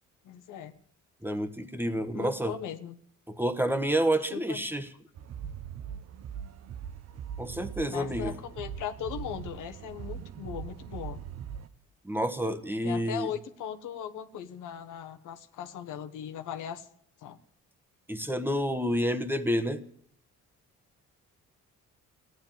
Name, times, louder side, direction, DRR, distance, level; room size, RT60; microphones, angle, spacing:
voice 1, 0.2-0.7 2.1-2.9 4.3-4.6 7.9-11.2 12.8-16.9 17.2-17.4, left 9 dB, 85° left, 7 dB, 1.2 m, -38 dB
voice 2, 1.2-2.5 3.3-4.9 7.4-8.3 12.0-13.3 18.1-19.8, equal, 5° right, 9 dB, 1.3 m, -29 dB
sound 1, 5.2-11.7, right 8 dB, 55° right, 0.9 m, -41 dB
15.0 x 10.0 x 9.2 m, 0.66 s
cardioid pair, 90°, 30 cm